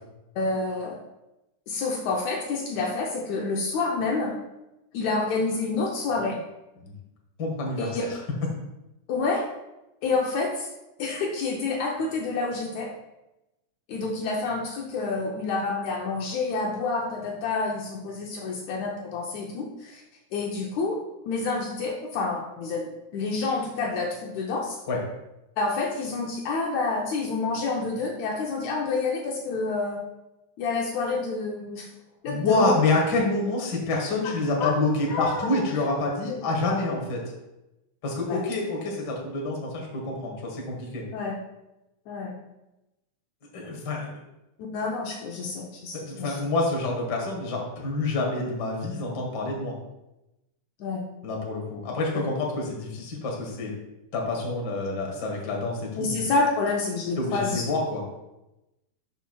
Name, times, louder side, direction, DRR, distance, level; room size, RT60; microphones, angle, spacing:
voice 1, 0.4-1.0 1.7-4.4 4.9-6.4 7.8-8.0 9.1-9.5 10.0-10.7 11.0-12.9 13.9-20.0 20.3-21.0 21.3-24.8 25.6-30.0 30.6-31.9 32.2-32.7 34.6-34.7 35.1-35.6 36.3-36.8 38.3-38.4 41.1-41.4 42.1-42.3 44.7-46.4 50.8-51.0 56.0-57.6, left 3 dB, 75° left, 0 dB, 2.1 m, -28 dB
voice 2, 7.4-8.2 24.9-25.0 32.3-37.2 38.0-41.0 43.5-44.1 45.9-49.7 51.2-53.7 54.1-56.2 57.2-58.0, left 2 dB, 40° left, -1 dB, 1.8 m, -27 dB
11.5 x 5.7 x 2.3 m, 0.95 s
omnidirectional pair, 3.5 m